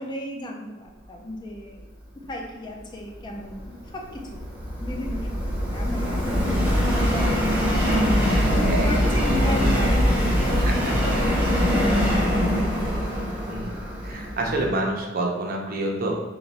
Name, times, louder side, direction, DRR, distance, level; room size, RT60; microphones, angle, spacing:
voice 1, 0.0-1.8 2.3-4.4 4.8-7.5 8.5-12.5, left 1 dB, 25° left, 0 dB, 0.4 m, -34 dB
Subway metro underground, 3.4-14.7, equal, 10° right, 0.7 m, -23 dB
voice 2, 8.1-9.3 9.6-9.7 10.6-11.5 13.5-13.7 14.0-16.1, right 2 dB, 50° right, 0 dB, 0.6 m, -29 dB
2.9 x 2.5 x 3.9 m, 1.1 s
head